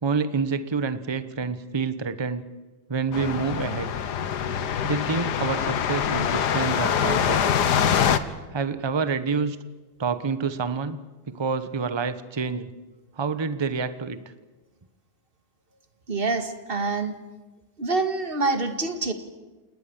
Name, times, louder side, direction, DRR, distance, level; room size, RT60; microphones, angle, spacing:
voice 1, 0.0-2.4 2.9-3.9 4.8-7.5 8.5-9.6 10.0-11.0 11.3-12.7 13.2-14.2, right 5 dB, 45° right, 12 dB, 0.3 m, -27 dB
sound 1, 3.1-8.2, left 8 dB, 55° left, 1.5 m, -24 dB
voice 2, 16.1-17.2 17.8-19.1, right 3 dB, 25° right, 8 dB, 2.0 m, -26 dB
28.5 x 19.0 x 7.2 m, 1.2 s
omnidirectional pair, 2.3 m